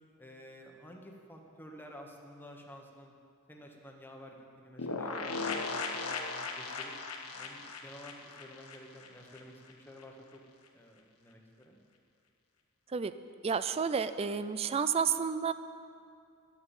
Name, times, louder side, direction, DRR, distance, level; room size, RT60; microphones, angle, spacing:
voice 1, 0.2-3.1 3.5-5.1 5.5-7.0 7.3-10.4 10.7-11.8, equal, 10° left, 1 dB, 1.1 m, -51 dB
sound 1, 4.8-9.4 9.7-9.8 10.0-10.1, left 3 dB, 85° left, 1.1 m, -37 dB
voice 2, 13.4-15.5, right 6 dB, 30° right, 12 dB, 0.3 m, -30 dB
12.0 x 7.2 x 7.2 m, 2.4 s
head